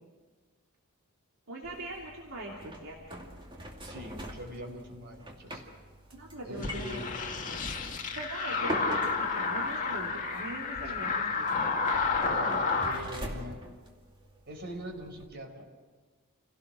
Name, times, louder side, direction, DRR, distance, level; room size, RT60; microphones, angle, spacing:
voice 1, 1.5-3.2 6.1-7.0 8.1-11.7, right 1 dB, 65° right, -3 dB, 3.2 m, -41 dB
sound 1, 1.6-15.3, equal, 25° right, 2.5 m, -44 dB
voice 2, 3.8-5.6 6.4-7.1 12.3-13.6 14.5-15.7, equal, 50° right, 3 dB, 4.4 m, -42 dB
sound 2, 6.6-13.0, left 4 dB, 35° left, 2.0 m, -31 dB
28.5 x 17.5 x 6.4 m, 1.4 s
head